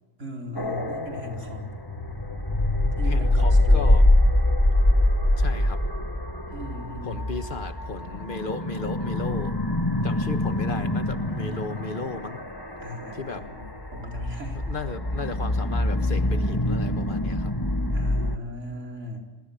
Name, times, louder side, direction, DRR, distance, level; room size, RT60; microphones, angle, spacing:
voice 1, 0.2-1.7 3.0-4.0 6.5-7.3 12.8-14.6 17.9-19.2, equal, 85° right, 1 dB, 4.7 m, -38 dB
sound 1, 0.6-18.4, left 1 dB, 20° left, 1.6 m, -24 dB
voice 2, 3.1-4.1 5.4-5.8 7.1-9.6 10.0-12.4 13.1-13.5 14.7-17.5, left 3 dB, 45° left, 9 dB, 1.6 m, -35 dB
26.5 x 24.0 x 7.1 m, 1.2 s
omnidirectional pair, 1.2 m